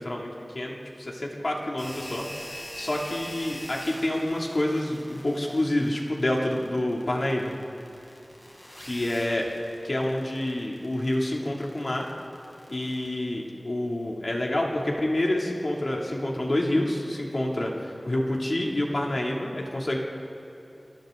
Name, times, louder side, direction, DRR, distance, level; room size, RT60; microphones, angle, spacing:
voice 1, 0.0-7.5 8.8-9.4 9.8-12.1 12.7-20.0, left 1 dB, 60° left, -2 dB, 2.9 m, -28 dB
sound 1, 1.8-13.1, equal, 25° left, 6.1 m, -44 dB
28.5 x 26.0 x 3.9 m, 2.8 s
wide cardioid pair, 45°, 0 cm